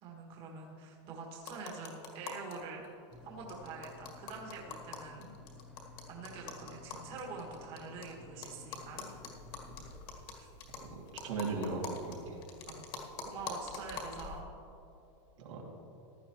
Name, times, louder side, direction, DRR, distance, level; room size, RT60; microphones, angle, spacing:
voice 1, 0.0-2.8 3.2-5.3 6.1-9.1 12.7-12.9 13.2-14.5, right 4 dB, 35° right, -2 dB, 1.8 m, -45 dB
sound 1, 1.4-2.5 2.8-2.9 3.1-3.2 3.5-8.0 8.4-14.4, left 5 dB, 35° left, 1.8 m, -45 dB
sound 2, 3.1-9.9, left 4 dB, 5° right, 0.7 m, -54 dB
voice 2, 10.8-12.4 15.4-15.6, right 3 dB, 85° right, -2 dB, 2.7 m, -38 dB
15.5 x 11.0 x 3.1 m, 2.8 s
supercardioid pair, 160°, 16 cm